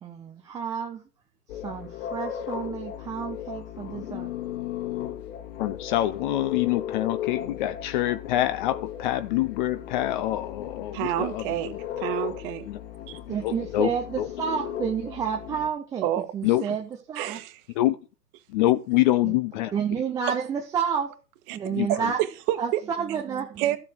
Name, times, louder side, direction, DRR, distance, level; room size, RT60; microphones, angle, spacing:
voice 1, 0.0-1.0 1.6-4.3 13.3-16.1 16.3-17.4 19.2-19.4 19.7-21.1 21.5-22.2 22.6-23.6, right 7 dB, 5° right, 0.5 m, -30 dB
sound 1, 1.5-15.7, left 10 dB, 50° left, 2.6 m, -36 dB
voice 2, 5.6-11.8 12.7-12.8 13.4-13.9 14.2-14.3 16.4-16.6 17.8-18.0 18.5-19.7 21.7-22.1, left 15 dB, 30° left, 0.8 m, -25 dB
voice 3, 10.9-12.7 13.1-13.2 16.0-16.3 17.1-17.6 21.5-21.6 21.9-22.8 23.6-23.8, right 13 dB, 35° right, 1.5 m, -28 dB
13.5 x 7.7 x 6.0 m
hypercardioid pair, 120°, 49 cm